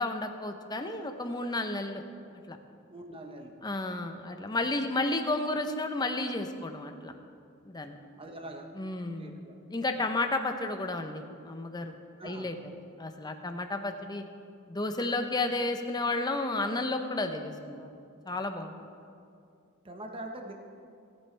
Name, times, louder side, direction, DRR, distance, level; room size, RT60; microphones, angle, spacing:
voice 1, 0.0-2.0 2.5-2.6 3.6-7.1 7.7-8.0 8.7-9.4 9.7-11.9 12.2-12.6 13.0-14.2 14.7-18.0 18.3-18.8, left 2 dB, 20° left, 6 dB, 0.7 m, -32 dB
voice 2, 2.9-3.5 8.2-8.7 9.0-9.6 12.2-12.5 19.8-20.5, right 1 dB, 25° right, 3 dB, 1.1 m, -43 dB
18.0 x 8.8 x 3.3 m, 2.4 s
head